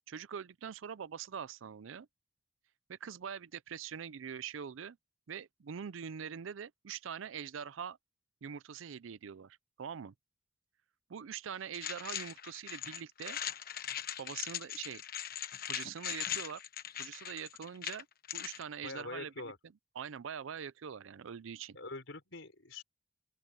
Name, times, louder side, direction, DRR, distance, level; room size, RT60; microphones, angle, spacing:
voice 1, 0.1-2.1 2.9-5.0 5.3-8.0 8.4-10.1 11.1-13.4 14.2-15.0 15.7-16.6 17.0-18.1 18.3-19.3 20.0-21.8, right 7 dB, 85° right, 0.5 m, -43 dB
sound 1, 11.7-18.6, left 10 dB, 50° left, 1.2 m, -40 dB
voice 2, 18.8-19.6 21.7-22.8, left 2 dB, 75° left, 4.0 m, -44 dB
open air
head